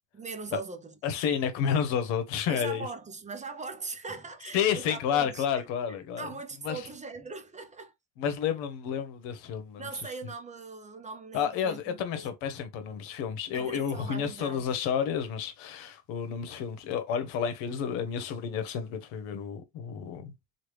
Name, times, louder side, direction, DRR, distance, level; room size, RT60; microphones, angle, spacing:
voice 1, 0.1-1.0 2.5-7.9 9.8-12.3 13.5-14.7, right 4 dB, 20° right, 0.4 m, -40 dB
voice 2, 1.0-2.9 4.5-6.3 6.6-6.9 8.2-9.9 11.3-20.3, left 8 dB, 85° left, 1.0 m, -30 dB
3.2 x 2.4 x 3.2 m
cardioid pair, 110°, 45 cm